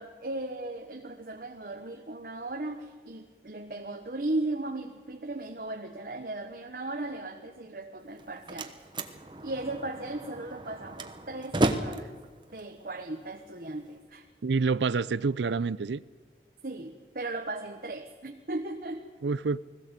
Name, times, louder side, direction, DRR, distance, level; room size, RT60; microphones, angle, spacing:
voice 1, 0.0-8.7 9.4-12.1 12.5-14.3 16.6-19.0, right 2 dB, 55° right, 1.1 m, -36 dB
Slam, 8.0-14.0, right 1 dB, 25° right, 1.0 m, -34 dB
voice 2, 14.4-16.0 19.2-19.6, right 4 dB, 90° right, 0.5 m, -27 dB
20.5 x 15.5 x 8.2 m
head